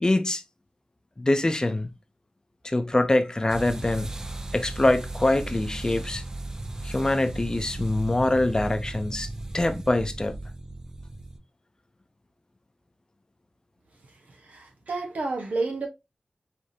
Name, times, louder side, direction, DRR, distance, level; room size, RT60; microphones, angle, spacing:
voice 1, 0.0-0.4 1.2-1.9 2.6-4.1 4.5-6.2 6.8-9.3 9.5-10.4, left 2 dB, 30° left, 0.6 m, -24 dB
sound 1, 3.5-11.4, right 2 dB, 25° right, 0.5 m, -36 dB
voice 2, 14.3-15.9, right 3 dB, 80° right, 1.2 m, -30 dB
4.7 x 3.4 x 2.7 m
wide cardioid pair, 75°, 3 cm